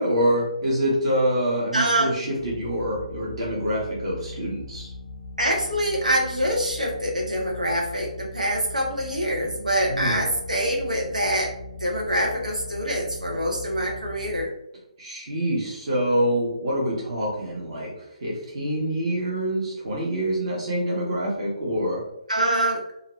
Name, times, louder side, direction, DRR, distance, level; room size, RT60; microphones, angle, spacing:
voice 1, 0.0-4.9 9.9-10.2 15.0-22.0, equal, 45° right, -4 dB, 1.1 m, -26 dB
voice 2, 1.7-2.2 5.4-11.5 11.8-14.5 22.3-22.8, right 1 dB, 80° right, 0 dB, 0.9 m, -25 dB
sound 1, 2.4-14.5, left 2 dB, 55° left, 0.4 m, -39 dB
2.7 x 2.6 x 3.0 m, 0.80 s
figure-of-eight pair, 135°, 4 cm